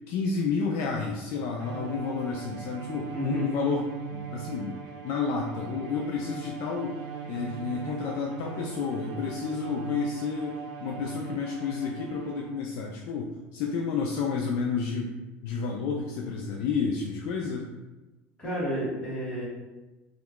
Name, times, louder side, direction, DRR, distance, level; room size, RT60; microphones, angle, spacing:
voice 1, 0.1-15.2 15.4-17.7, left 5 dB, 60° left, 0 dB, 0.4 m, -31 dB
Bowed string instrument, 1.6-12.8, right 7 dB, 60° right, 0.6 m, -40 dB
voice 2, 3.1-3.5 18.4-19.4, equal, 20° left, -8 dB, 1.4 m, -31 dB
2.9 x 2.3 x 3.5 m, 1.1 s
cardioid pair, 145°, 5 cm